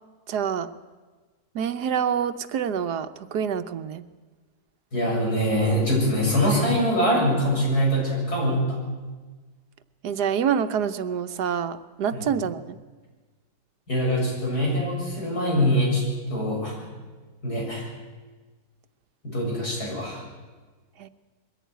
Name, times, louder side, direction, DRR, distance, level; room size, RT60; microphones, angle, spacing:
voice 1, 0.3-0.7 1.5-4.0 10.0-12.8 21.0-21.1, right 8 dB, 85° right, 11 dB, 1.4 m, -27 dB
voice 2, 4.9-8.8 12.1-12.2 13.9-16.0 16.3-16.8 17.4-17.9 19.2-20.2, equal, 75° left, -3 dB, 7.9 m, -23 dB
21.5 x 15.5 x 9.3 m, 1.4 s
omnidirectional pair, 1.7 m